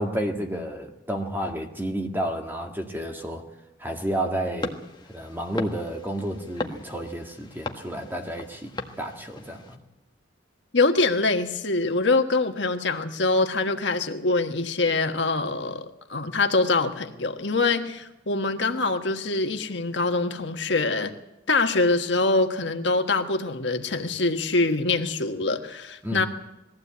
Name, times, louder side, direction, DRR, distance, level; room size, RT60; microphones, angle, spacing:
voice 1, 0.0-3.4 3.8-4.8 5.1-9.8 26.0-26.3, right 1 dB, 10° right, 3 dB, 1.9 m, -31 dB
sound 1, 4.6-9.8, left 2 dB, 25° left, 1.4 m, -37 dB
voice 2, 10.7-21.1 21.5-26.3, left 3 dB, 70° left, 6 dB, 1.4 m, -24 dB
21.0 x 15.5 x 8.4 m, 0.94 s
head